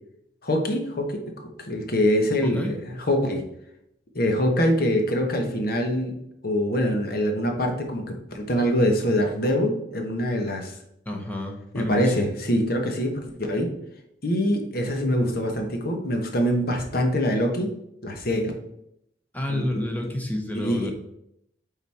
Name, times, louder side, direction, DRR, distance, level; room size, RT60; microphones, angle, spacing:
voice 1, 0.4-1.2 1.7-3.5 4.1-6.1 6.4-10.8 11.7-13.7 14.2-17.7 18.0-18.5 19.5-19.8 20.5-20.9, equal, 60° left, 3 dB, 1.2 m, -24 dB
voice 2, 2.4-2.7 11.0-12.3 19.3-20.9, left 1 dB, 10° left, 2 dB, 1.0 m, -30 dB
8.0 x 4.0 x 4.3 m, 0.78 s
head